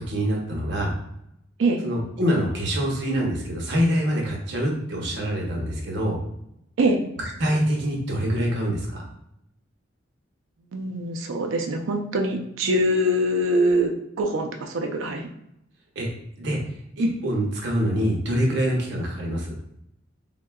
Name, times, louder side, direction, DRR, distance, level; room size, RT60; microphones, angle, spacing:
voice 1, 0.1-1.0 1.8-6.2 7.2-9.0 16.0-16.1 16.4-16.6 17.0-19.5, equal, 65° right, 0 dB, 0.8 m, -25 dB
voice 2, 10.7-15.3, right 1 dB, 85° right, 3 dB, 0.5 m, -23 dB
3.7 x 2.1 x 2.2 m, 0.79 s
head